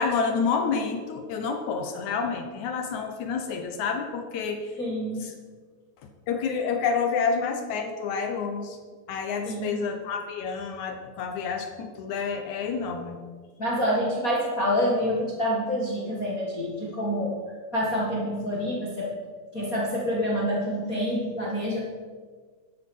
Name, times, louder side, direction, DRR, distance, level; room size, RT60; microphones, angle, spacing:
voice 1, 0.0-4.6 5.2-5.3 6.3-8.8 9.1-13.2, left 5 dB, 65° left, 5 dB, 2.0 m, -29 dB
voice 2, 4.8-5.2 9.4-9.8 13.6-17.4 17.7-19.1 19.5-21.8, equal, 35° left, -4 dB, 1.6 m, -27 dB
12.0 x 11.0 x 5.5 m, 1.5 s
omnidirectional pair, 4.2 m